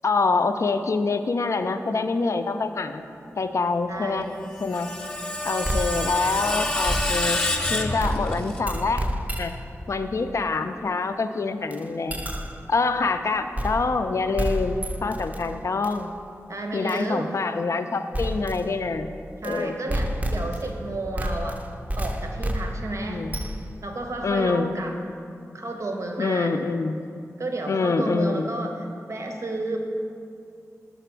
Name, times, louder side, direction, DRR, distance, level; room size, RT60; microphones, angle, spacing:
voice 1, 0.0-3.0 3.4-4.3 4.6-4.9 5.4-7.4 7.7-9.1 9.4-9.5 9.9-12.3 12.7-16.1 16.7-19.1 19.4-19.9 23.0-23.4 24.2-24.7 26.2-27.0 27.7-28.5, left 4 dB, 60° left, 8 dB, 0.3 m, -25 dB
voice 2, 3.9-4.3 16.5-17.4 19.4-21.6 22.0-23.3 23.8-24.9 25.5-26.6 27.4-29.8, right 2 dB, 60° right, 3 dB, 0.7 m, -31 dB
Screech, 4.3-8.6, left 1 dB, 15° left, 0.8 m, -28 dB
sound 1, 5.6-7.6 8.0-9.8 11.7-11.8 12.1-12.7 13.6-14.1 14.4-15.4 15.8-16.0 16.9-17.0 18.1-18.7 19.4-19.6 19.9-20.8 21.2-23.8, equal, 25° right, 0.5 m, -29 dB
6.0 x 4.1 x 4.5 m, 2.5 s
cardioid pair, 40°, 6 cm